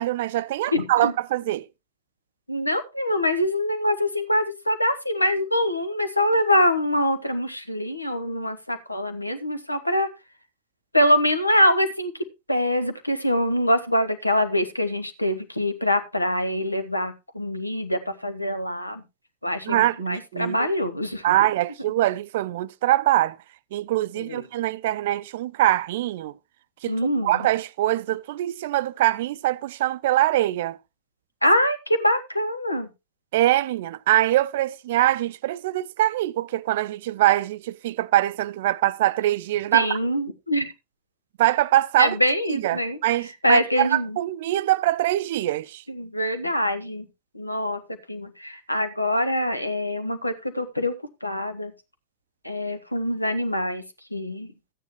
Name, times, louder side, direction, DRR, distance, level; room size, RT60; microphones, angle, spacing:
voice 1, 0.0-1.6 19.7-20.6 21.2-23.4 23.7-26.3 26.8-27.0 27.2-30.8 33.3-40.0 41.4-42.2 42.5-45.8, right 15 dB, 55° right, 0.5 m, -23 dB
voice 2, 0.7-1.1 2.5-10.1 10.9-12.1 12.5-19.0 19.4-21.4 24.1-24.4 26.9-27.3 31.4-32.9 39.7-40.7 42.0-43.0 43.4-44.2 45.9-47.1 47.3-47.8 48.1-50.9 51.2-51.7 52.4-53.8 54.1-54.5, left 1 dB, 85° left, 1.1 m, -24 dB
13.0 x 9.4 x 3.1 m
figure-of-eight pair, 90°, 0 cm